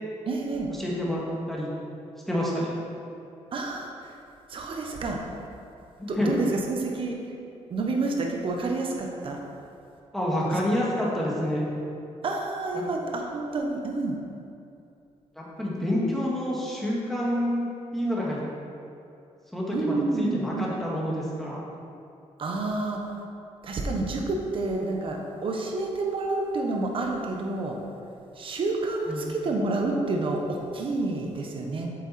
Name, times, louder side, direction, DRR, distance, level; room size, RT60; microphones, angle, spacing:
voice 1, 0.3-0.7 3.5-4.1 4.5-5.2 6.1-7.2 7.7-9.4 10.4-10.6 12.2-14.2 19.7-20.8 22.4-23.0 23.6-27.8 28.4-31.9, right 3 dB, 50° right, 1 dB, 1.2 m, -29 dB
voice 2, 0.8-1.2 1.5-1.7 2.3-2.8 6.0-6.3 10.1-11.7 12.7-12.8 15.4-18.4 19.5-21.6 29.1-29.2, left 1 dB, ahead, -5 dB, 1.8 m, -28 dB
8.6 x 6.9 x 4.3 m, 2.7 s
cardioid pair, 140°, 12 cm